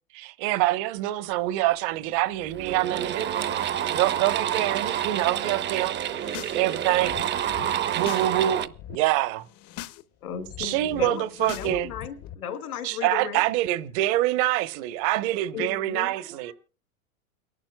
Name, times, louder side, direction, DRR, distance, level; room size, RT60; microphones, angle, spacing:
voice 1, 0.1-3.3 3.9-6.0 6.5-7.1 7.9-9.5 10.6-11.9 12.8-16.5, right 15 dB, 50° right, 1.2 m, -25 dB
sound 1, 2.0-2.1 2.4-8.7, right 10 dB, 25° right, 0.8 m, -28 dB
voice 2, 5.9-6.9 16.1-16.5, right 6 dB, 90° right, 3.8 m, -46 dB
sound 2, 6.0-6.6 6.9-8.3 8.6-9.0 9.4-10.0 10.3-12.3, left 13 dB, 35° left, 0.8 m, -41 dB
voice 3, 10.2-13.4 15.5-16.1, left 7 dB, 80° left, 2.6 m, -35 dB
29.5 x 11.5 x 2.3 m
hypercardioid pair, 115°, 44 cm